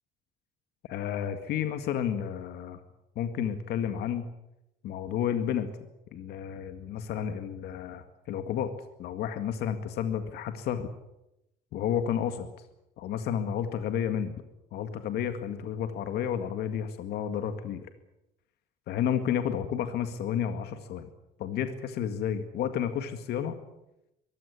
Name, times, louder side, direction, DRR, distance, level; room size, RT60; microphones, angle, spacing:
voice 1, 0.9-2.8 3.2-4.3 4.8-5.7 6.1-8.7 9.0-10.9 11.7-12.5 13.0-14.4 14.7-17.9 18.9-21.1 21.4-23.6, left 9 dB, 75° left, 8 dB, 2.0 m, -31 dB
23.0 x 15.5 x 9.7 m, 0.89 s
cardioid pair, 110°, 17 cm